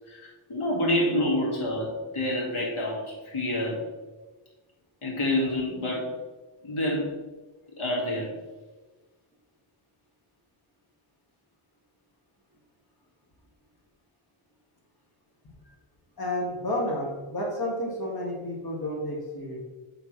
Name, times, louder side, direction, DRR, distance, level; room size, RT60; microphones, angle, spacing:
voice 1, 0.1-3.8 5.0-6.1 6.6-7.2 7.8-8.3, left 1 dB, 80° left, -4 dB, 2.0 m, -28 dB
voice 2, 16.2-19.6, left 1 dB, 45° left, -2 dB, 1.7 m, -31 dB
7.7 x 4.0 x 3.1 m, 1.2 s
wide cardioid pair, 80°, 50 cm